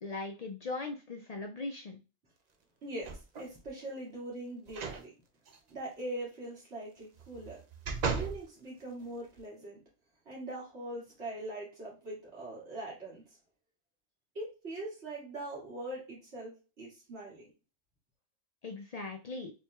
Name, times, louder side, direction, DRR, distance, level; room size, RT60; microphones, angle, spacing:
voice 1, 0.0-2.0 18.6-19.5, left 3 dB, 55° left, 3 dB, 0.4 m, -39 dB
voice 2, 2.8-5.1 5.7-7.6 8.1-9.8 10.3-13.2 14.3-17.5, right 1 dB, 85° right, -5 dB, 2.4 m, -42 dB
sound 1, 3.0-3.6 4.7-5.0 5.5-5.6 7.2-8.4 9.0-9.1, right 5 dB, 50° right, 0.6 m, -36 dB
4.4 x 3.5 x 2.3 m, 0.31 s
omnidirectional pair, 1.1 m